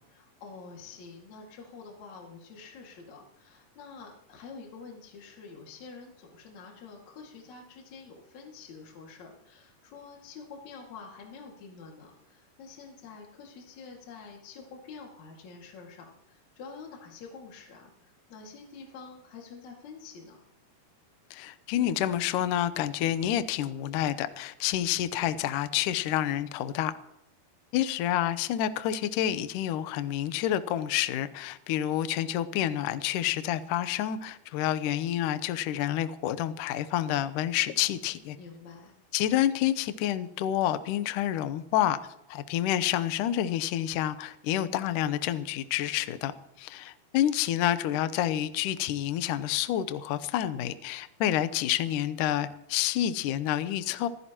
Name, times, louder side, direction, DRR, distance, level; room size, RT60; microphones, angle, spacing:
voice 1, 0.1-20.4 38.4-39.0, left 5 dB, 50° left, -1 dB, 3.1 m, -47 dB
voice 2, 21.3-26.9 27.7-38.4 39.1-42.0 42.3-46.3 46.6-54.1, left 12 dB, 80° left, 11 dB, 1.9 m, -28 dB
24.5 x 15.5 x 3.0 m, 0.79 s
omnidirectional pair, 4.7 m